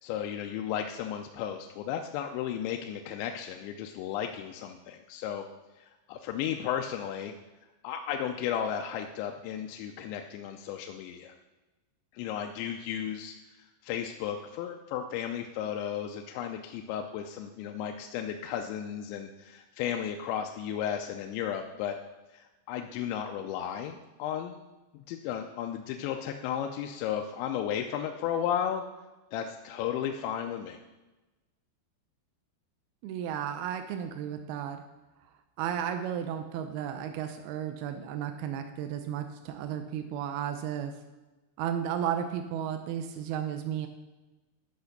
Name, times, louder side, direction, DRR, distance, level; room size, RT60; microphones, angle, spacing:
voice 1, 0.0-5.5 5.8-7.3 7.8-11.3 12.1-22.0 22.3-24.6 24.9-28.8 29.3-30.8, left 9 dB, 80° left, 4 dB, 2.8 m, -34 dB
voice 2, 33.0-34.8 35.6-40.9 41.6-43.9, right 9 dB, 85° right, 7 dB, 2.2 m, -33 dB
10.5 x 5.9 x 6.5 m, 1.1 s
omnidirectional pair, 5.3 m